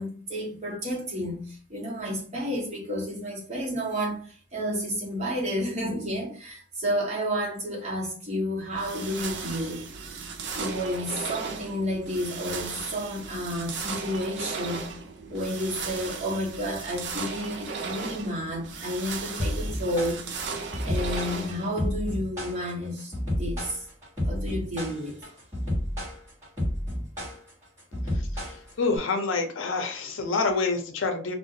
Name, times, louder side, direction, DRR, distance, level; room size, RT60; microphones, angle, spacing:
voice 1, 0.0-9.8 10.5-14.9 15.3-20.2 20.8-23.9 24.2-25.2, equal, 35° right, 0.8 m, -31 dB
sound 1, 8.7-21.9, right 5 dB, 65° right, 0.4 m, -36 dB
sound 2, 19.4-29.0, left 1 dB, 15° right, 1.2 m, -31 dB
voice 2, 28.8-31.3, left 4 dB, 85° left, 0.5 m, -27 dB
2.4 x 2.1 x 2.7 m
head